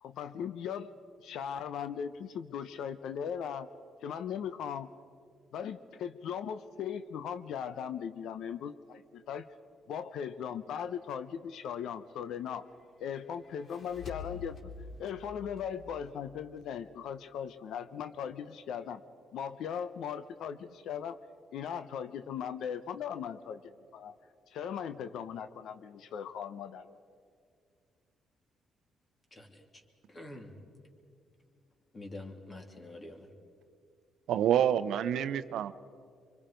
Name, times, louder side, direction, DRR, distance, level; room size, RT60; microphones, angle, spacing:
voice 1, 0.0-0.9 1.2-3.7 4.0-4.9 5.5-9.4 9.9-12.7 13.0-14.6 15.0-19.0 19.3-21.2 21.5-24.2 24.5-27.0, left 8 dB, 80° left, 11 dB, 0.7 m, -38 dB
sound 1, 13.4-16.8, left 5 dB, 50° left, 2.9 m, -47 dB
voice 2, 29.3-29.6 30.1-30.5 31.9-33.3, left 2 dB, 30° left, 2 dB, 3.1 m, -46 dB
voice 3, 34.3-35.7, right 10 dB, 80° right, 13 dB, 0.7 m, -27 dB
25.0 x 24.5 x 5.2 m, 2.2 s
cardioid pair, 90°, 0 cm